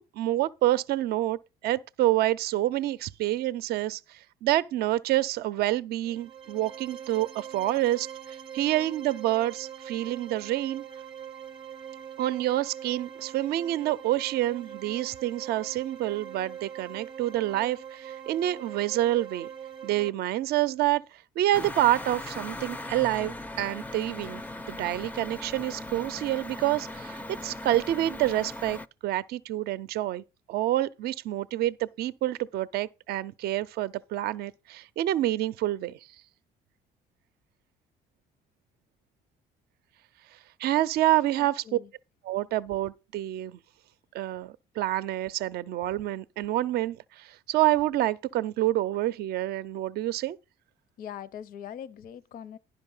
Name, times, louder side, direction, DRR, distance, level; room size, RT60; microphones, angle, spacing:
voice 1, 0.0-1.4 1.6-10.8 12.2-19.5 19.8-24.4 24.7-36.0 40.3-41.8 42.2-43.6 44.1-50.4, right 14 dB, 70° right, 0.5 m, -28 dB
sound 1, 6.0-20.1, right 9 dB, 30° right, 0.6 m, -43 dB
sound 2, 21.5-28.9, left 1 dB, 10° left, 0.4 m, -39 dB
voice 2, 41.4-41.9 51.0-52.6, left 9 dB, 60° left, 0.5 m, -42 dB
10.5 x 5.3 x 5.4 m
cardioid pair, 110°, 17 cm